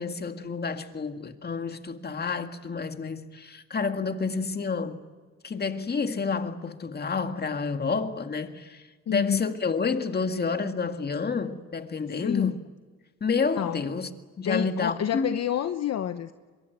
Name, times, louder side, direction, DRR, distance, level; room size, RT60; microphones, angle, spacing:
voice 1, 0.0-5.0 5.4-12.6 13.2-14.1 14.4-15.4, left 4 dB, 35° left, 2.0 m, -29 dB
voice 2, 9.1-9.5 12.2-12.6 13.6-13.8 14.4-16.3, left 10 dB, 55° left, 1.0 m, -28 dB
24.0 x 23.0 x 9.3 m
cardioid pair, 90°, 30 cm